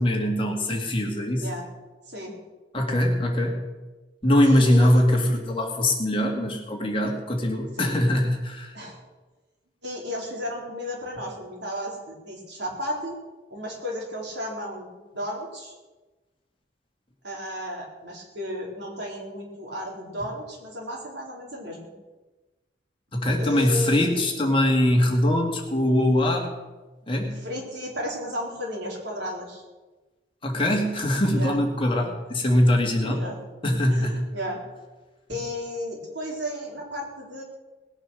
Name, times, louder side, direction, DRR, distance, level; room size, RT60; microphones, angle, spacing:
voice 1, 0.0-1.5 2.7-3.7 4.2-8.7 23.1-26.5 27.1-27.5 30.4-33.3 33.6-34.3, left 1 dB, 30° left, 1 dB, 2.3 m, -22 dB
voice 2, 4.4-5.0 7.8-8.0 8.7-9.0 9.8-13.2 13.5-15.7 17.2-21.9 23.4-24.2 27.4-29.6 31.3-31.6 33.0-33.4 33.9-34.6 35.3-37.4, equal, 70° right, -1 dB, 4.1 m, -34 dB
19.0 x 9.0 x 6.4 m, 1.2 s
head